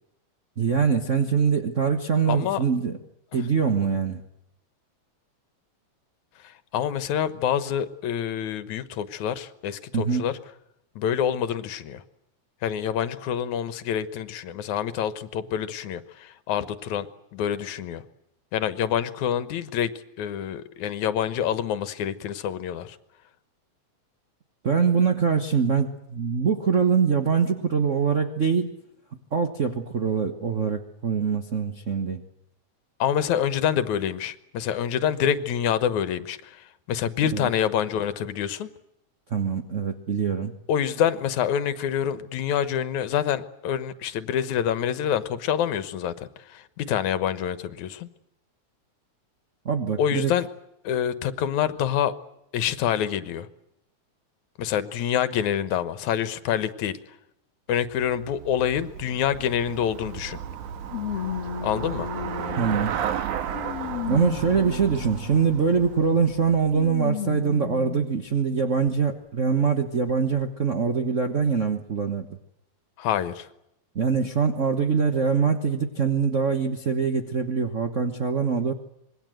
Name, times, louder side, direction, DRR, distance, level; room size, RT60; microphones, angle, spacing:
voice 1, 0.6-3.0 3.3-4.2 9.9-10.3 24.6-28.7 29.3-32.2 37.3-37.5 39.3-40.5 49.6-50.3 62.6-62.9 64.1-72.3 73.9-78.7, right 6 dB, 65° right, 7 dB, 0.7 m, -23 dB
voice 2, 2.3-2.6 6.4-10.4 11.0-12.0 12.6-17.1 17.3-18.0 18.5-19.9 20.2-23.0 33.0-38.7 40.7-48.1 50.0-50.5 50.8-52.1 52.5-53.5 54.6-57.0 57.7-60.4 61.6-62.1 73.0-73.5, left 9 dB, 75° left, 13 dB, 2.5 m, -26 dB
Traffic noise roadway noise / Bicycle, 57.9-67.1, right 9 dB, 85° right, 2.8 m, -34 dB
sound 1, 59.7-59.8 60.9-63.0 63.5-65.6 66.7-68.2 68.9-69.0 70.1-70.2, left 8 dB, 55° left, 2.4 m, -33 dB
26.0 x 21.5 x 7.8 m, 0.82 s
omnidirectional pair, 3.4 m